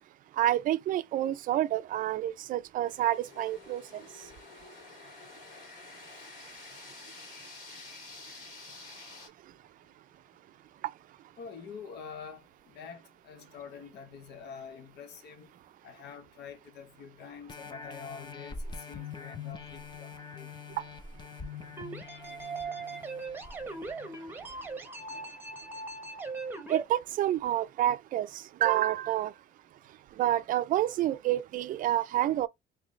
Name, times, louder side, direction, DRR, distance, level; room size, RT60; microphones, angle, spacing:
voice 1, 0.4-4.0 10.8-10.9 20.8-20.9 26.7-29.3 30.2-32.5, right 13 dB, 55° right, 0.4 m, -28 dB
sound 1, 2.8-9.3, left 3 dB, 55° left, 2.4 m, -49 dB
voice 2, 11.4-15.5 15.8-20.5, left 6 dB, 80° left, 1.0 m, -46 dB
sound 2, 17.5-24.7 25.2-25.3, left 5 dB, 25° left, 0.7 m, -44 dB
sound 3, 21.8-26.8, right 3 dB, 10° right, 0.9 m, -39 dB
3.8 x 2.8 x 3.1 m
cardioid pair, 110°, 17 cm